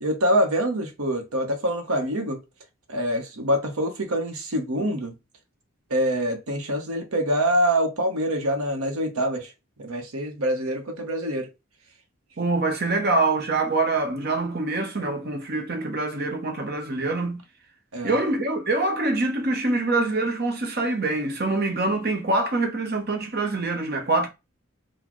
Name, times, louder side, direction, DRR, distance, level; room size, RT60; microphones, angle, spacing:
voice 1, 0.0-2.4 2.9-5.2 5.9-9.5 9.8-11.5 17.9-18.2, equal, 80° right, 0.9 m, -25 dB
voice 2, 12.4-17.4 18.0-24.3, right 2 dB, 45° right, 0.8 m, -25 dB
4.0 x 2.2 x 3.0 m
head